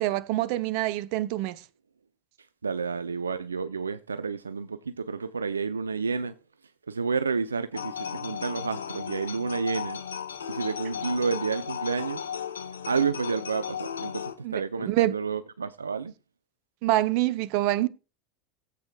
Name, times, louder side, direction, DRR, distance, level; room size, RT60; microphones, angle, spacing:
voice 1, 0.0-1.6 14.4-15.1 16.8-17.9, right 16 dB, 55° right, 0.8 m, -26 dB
voice 2, 2.6-6.3 6.9-10.0 10.5-12.3 12.9-16.1, right 5 dB, 90° right, 0.5 m, -30 dB
sound 1, 7.7-14.3, left 8 dB, 85° left, 1.0 m, -35 dB
18.0 x 8.4 x 2.3 m
hypercardioid pair, 85°, 0 cm